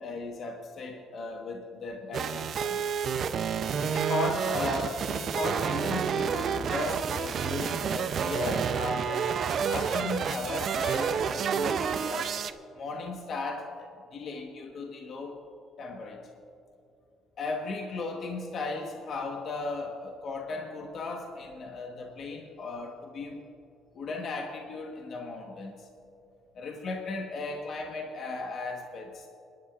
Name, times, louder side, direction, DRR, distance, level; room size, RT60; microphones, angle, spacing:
voice 1, 0.0-3.1 3.8-9.3 9.7-12.3 12.8-15.4 15.8-16.3 17.4-23.5 23.9-25.9 26.5-29.3, left 3 dB, 50° left, 2 dB, 1.2 m, -36 dB
sound 1, 2.1-12.5, right 7 dB, 50° right, 0.5 m, -29 dB
28.5 x 11.0 x 2.5 m, 2.6 s
cardioid pair, 105°, 0 cm